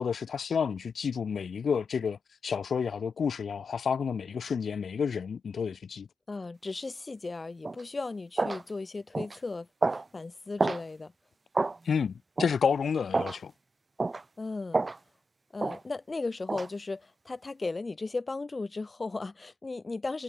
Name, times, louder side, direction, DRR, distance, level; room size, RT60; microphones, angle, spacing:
voice 1, 0.0-2.2 2.4-6.1 11.8-13.5, left 6 dB, 70° left, 3.3 m, -30 dB
voice 2, 6.3-11.1 14.4-14.8 15.5-20.2, left 3 dB, 40° left, 2.6 m, -36 dB
sound 1, 7.6-7.8 8.4-8.6 9.1-9.4 9.8-10.0 10.6-10.8 11.5-11.8 12.4-12.6 13.1-13.4 14.0-14.2 14.7-15.0 15.6-15.8 16.5-16.7, right 3 dB, 40° right, 0.8 m, -28 dB
supercardioid pair, 45°, 0 cm